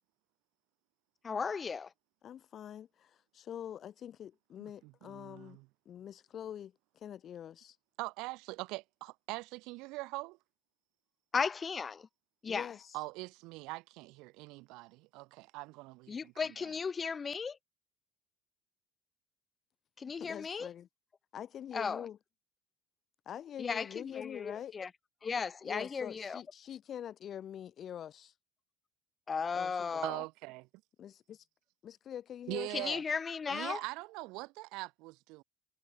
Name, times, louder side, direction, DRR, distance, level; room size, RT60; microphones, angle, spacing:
voice 1, 1.2-1.9 11.3-12.1 12.4-12.7 16.1-17.6 20.0-20.7 21.7-22.1 23.6-24.9 25.2-26.4 29.3-30.2 32.7-33.8, left 5 dB, 30° left, 2.6 m, -35 dB
voice 2, 2.2-5.6 5.8-7.8 12.5-13.0 20.0-20.9 21.3-22.2 23.3-24.8 25.6-28.3 29.5-30.0 31.0-31.4 31.8-32.9, left 9 dB, 50° left, 4.4 m, -45 dB
voice 3, 4.8-5.7 8.0-10.4 12.9-16.3 16.6-16.7 30.0-30.7 32.5-33.0 33.5-35.4, right 23 dB, 75° right, 1.8 m, -42 dB
supercardioid pair, 85°, 0 cm